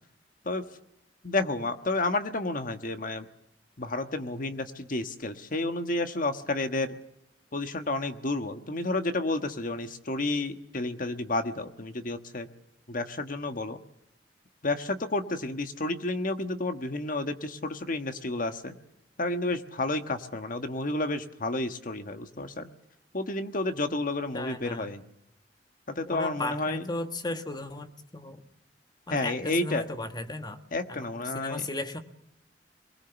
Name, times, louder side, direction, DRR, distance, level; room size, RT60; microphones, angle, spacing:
voice 1, 1.2-3.2 3.8-7.0 7.5-12.5 12.9-13.8 14.6-18.7 19.2-22.7 23.1-25.0 25.9-26.8 29.1-29.8 30.7-31.6, left 2 dB, 50° left, 8 dB, 1.4 m, -31 dB
voice 2, 24.3-24.9 26.0-28.4 29.1-30.6 30.9-32.0, left 2 dB, 25° left, 8 dB, 1.4 m, -36 dB
23.5 x 19.5 x 7.0 m, 0.80 s
head